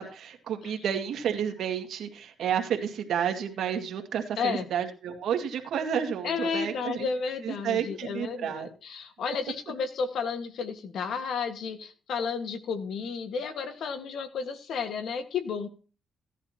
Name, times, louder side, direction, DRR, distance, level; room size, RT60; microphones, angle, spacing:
voice 1, 0.0-7.1 7.4-8.7, right 8 dB, 70° right, 4 dB, 2.1 m, -31 dB
voice 2, 6.2-15.7, left 5 dB, 70° left, 8 dB, 1.7 m, -32 dB
16.5 x 10.5 x 2.9 m, 0.37 s
cardioid pair, 90°, 0 cm